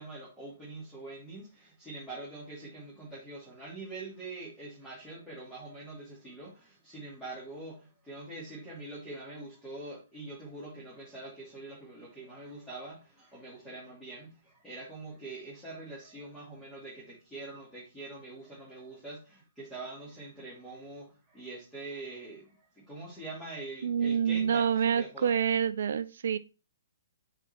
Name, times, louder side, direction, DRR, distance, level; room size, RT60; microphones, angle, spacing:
voice 1, 0.0-25.3, right 2 dB, 5° left, 2.7 m, -44 dB
voice 2, 23.8-26.4, right 7 dB, 65° right, 0.3 m, -27 dB
6.8 x 4.1 x 4.6 m
hypercardioid pair, 130°, 0 cm